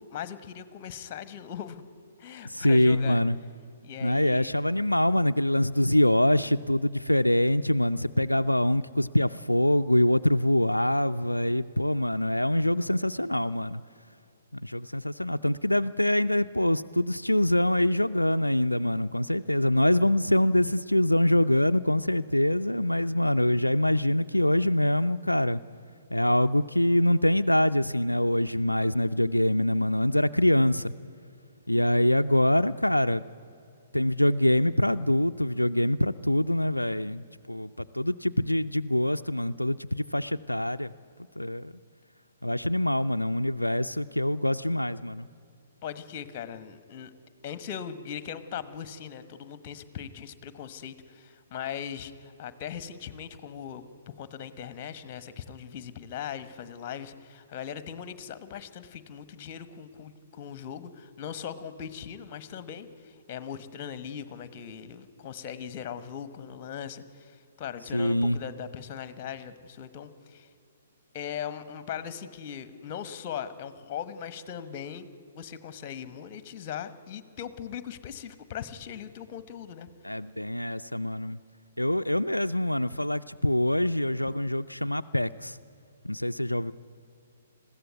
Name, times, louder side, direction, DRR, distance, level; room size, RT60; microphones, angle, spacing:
voice 1, 0.0-1.8 2.2-3.2 3.8-4.5 45.8-47.1 47.4-70.5 71.1-75.1 75.3-79.9, left 8 dB, 30° left, 14 dB, 1.2 m, -39 dB
voice 2, 2.4-3.4 4.0-13.8 14.5-25.6 26.1-30.9 31.7-33.2 33.9-40.9 41.4-41.7 42.4-45.3 67.9-68.4 80.0-81.4 81.8-85.6 86.0-86.7, left 1 dB, 85° left, 9 dB, 0.4 m, -24 dB
21.0 x 15.0 x 9.4 m, 2.5 s
figure-of-eight pair, 120°, 0 cm